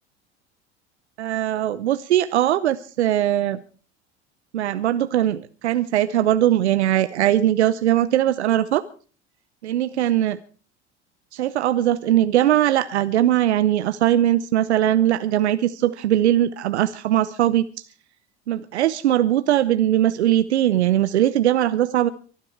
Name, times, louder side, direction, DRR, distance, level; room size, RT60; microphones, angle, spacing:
voice 1, 1.2-3.6 4.5-8.8 9.6-10.4 11.3-17.7 18.5-22.1, right 12 dB, 85° right, 14 dB, 0.8 m, -20 dB
24.0 x 10.5 x 4.6 m, 0.40 s
hypercardioid pair, 70°, 33 cm